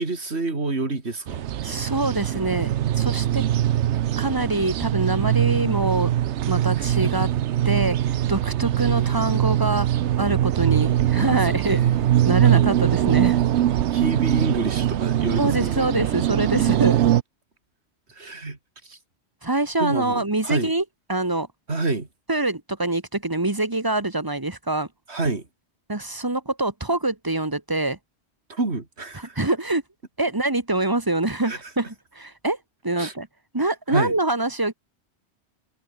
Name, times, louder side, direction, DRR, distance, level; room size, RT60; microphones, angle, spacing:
voice 1, 0.0-1.5 6.8-7.3 11.1-12.8 13.9-15.9 18.1-18.6 18.8-19.0 19.8-20.7 21.7-22.1 25.1-25.4 28.5-29.4 31.5-31.6 33.0-33.1 33.9-34.1, right 3 dB, 75° right, 3.4 m, -28 dB
sound 1, 1.3-17.2, right 11 dB, 90° right, 1.0 m, -22 dB
voice 2, 1.6-3.4 4.2-6.1 6.5-7.3 7.6-9.9 10.2-11.8 12.2-13.4 15.4-16.9 19.4-20.8 21.1-21.5 22.3-24.9 25.9-28.0 29.1-29.8 30.2-32.6 32.8-33.3 33.5-34.7, right 2 dB, 20° right, 1.6 m, -25 dB
omnidirectional pair, 1.1 m